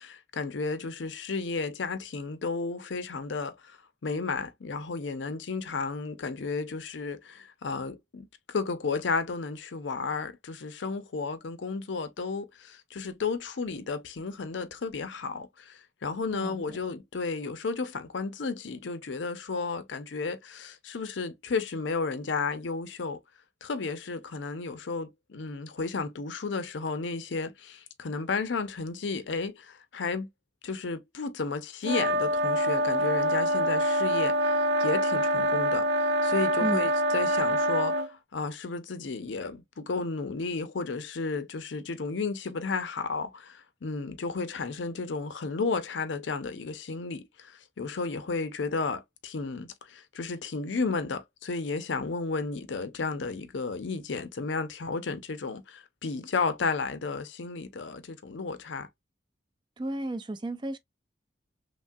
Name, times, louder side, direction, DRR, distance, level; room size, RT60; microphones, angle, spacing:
voice 1, 0.0-23.2 23.6-30.3 30.6-34.5 34.8-58.9, left 4 dB, 85° left, 0.6 m, -33 dB
voice 2, 16.3-16.8 36.6-36.9 59.8-60.8, right 1 dB, 25° right, 0.4 m, -33 dB
sound 1, 31.8-38.1, right 1 dB, 75° right, 0.5 m, -25 dB
3.2 x 2.3 x 2.6 m
head